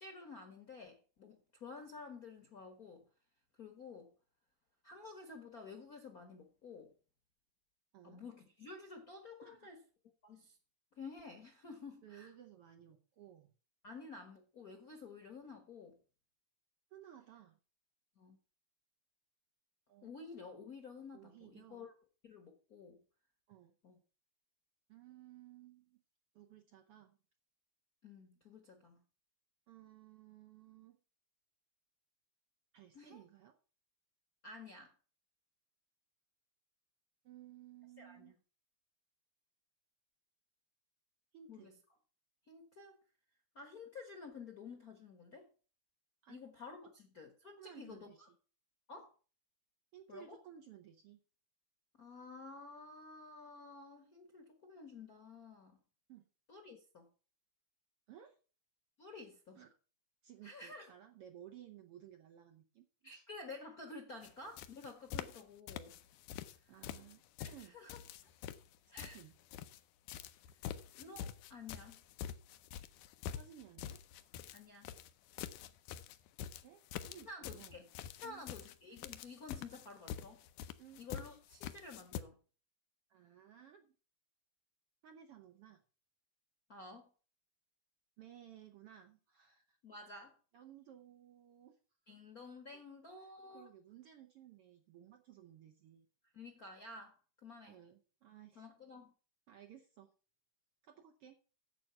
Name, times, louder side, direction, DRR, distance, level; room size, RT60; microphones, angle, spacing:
voice 1, 0.0-3.0 3.6-4.1 4.8-6.9 8.0-9.8 10.2-10.6 10.9-12.3 13.8-16.0 18.2-18.4 20.0-21.9 22.2-23.0 23.8-24.0 28.0-29.0 32.9-33.2 34.4-34.9 38.0-38.3 41.5-41.7 42.5-43.0 43.5-45.5 46.3-48.1 48.9-49.1 50.1-50.4 52.0-55.8 56.5-57.1 59.0-59.6 60.4-60.9 63.0-66.0 66.6-66.7 67.4-68.0 68.9-69.2 70.9-72.0 74.5-74.9 77.2-77.9 78.2-80.4 81.0-82.4 86.7-87.1 89.8-90.4 92.1-93.7 96.3-97.8 98.5-99.1, left 4 dB, 50° left, 1.1 m, -51 dB
voice 2, 12.0-13.5 16.9-17.6 19.9-20.1 21.1-21.9 23.5-23.8 24.9-26.0 26.3-27.2 29.7-31.0 32.7-33.5 37.2-38.4 41.3-41.7 46.2-46.4 47.6-48.3 49.9-51.2 56.1-56.3 58.1-58.4 59.6-59.7 60.2-63.2 66.7-67.2 67.5-67.8 68.9-69.3 73.3-74.0 76.6-77.7 78.2-78.4 80.8-81.0 83.1-83.9 85.0-85.8 88.2-89.8 90.5-91.8 92.0-92.2 93.2-96.1 97.7-98.7 99.5-100.1 100.8-101.4, right 11 dB, 70° right, 1.4 m, -57 dB
footsteps soft slippers, 64.2-64.3 64.6-65.4 65.7-66.6 66.8-69.8 70.1-82.2, left 10 dB, 85° left, 2.2 m, -46 dB
9.0 x 7.7 x 5.7 m
omnidirectional pair, 3.6 m